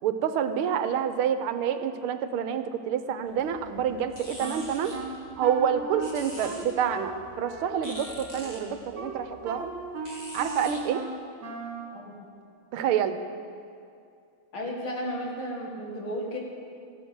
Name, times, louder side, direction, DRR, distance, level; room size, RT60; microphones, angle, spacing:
voice 1, 0.0-4.9 5.4-9.7 10.3-11.0 12.7-13.2, right 8 dB, 85° right, 9 dB, 1.6 m, -28 dB
sound 1, 3.3-10.8, equal, 20° left, 2.1 m, -46 dB
Wind instrument woodwind instrument, 4.4-11.9, right 3 dB, 50° right, 2.0 m, -38 dB
voice 2, 14.5-16.4, equal, 70° left, -1 dB, 3.0 m, -33 dB
15.0 x 11.5 x 6.2 m, 2.4 s
omnidirectional pair, 2.4 m